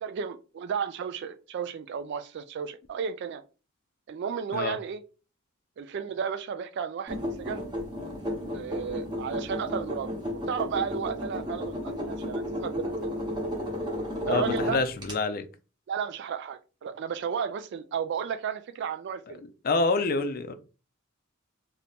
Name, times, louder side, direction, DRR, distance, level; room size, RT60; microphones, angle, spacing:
voice 1, 0.0-3.4 4.1-5.0 5.8-7.7 8.5-10.1 10.5-13.1 14.3-14.8 15.9-19.4, right 7 dB, 55° right, 0.3 m, -33 dB
sound 1, 7.1-15.1, left 1 dB, 20° right, 0.9 m, -33 dB
voice 2, 14.3-15.4 19.6-20.5, left 3 dB, 45° left, 0.4 m, -27 dB
2.8 x 2.6 x 3.4 m
head